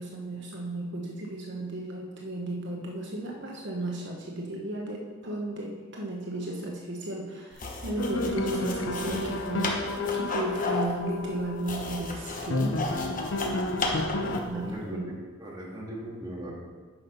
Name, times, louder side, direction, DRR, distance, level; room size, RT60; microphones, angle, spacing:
voice 1, 0.0-9.8 10.1-12.8 14.4-15.1, right 2 dB, 60° right, -1 dB, 1.1 m, -34 dB
sound 1, 7.5-14.6, left 2 dB, 45° left, 1.1 m, -34 dB
sound 2, 8.0-14.4, left 2 dB, 75° left, 0.6 m, -31 dB
voice 2, 13.8-15.1 15.4-16.5, right 1 dB, 20° right, -4 dB, 1.9 m, -39 dB
9.3 x 5.5 x 5.5 m, 1.5 s
head